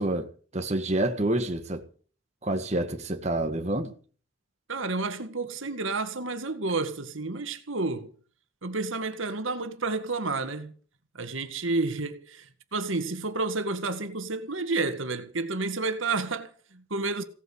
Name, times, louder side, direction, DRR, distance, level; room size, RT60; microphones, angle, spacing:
voice 1, 0.0-1.8 2.4-3.9, right 1 dB, 30° right, 1.6 m, -28 dB
voice 2, 4.7-8.1 8.6-10.7 11.1-17.2, right 3 dB, 75° right, 2.0 m, -30 dB
17.0 x 9.2 x 7.9 m
head